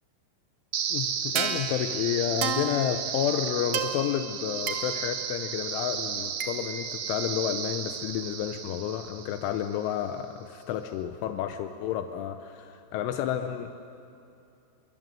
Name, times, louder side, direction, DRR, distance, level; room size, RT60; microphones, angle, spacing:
sound 1, 0.7-9.8, right 7 dB, 80° right, 1.6 m, -32 dB
voice 1, 0.9-13.8, left 10 dB, 80° left, 7 dB, 3.3 m, -30 dB
29.5 x 23.5 x 7.6 m, 2.7 s
omnidirectional pair, 5.5 m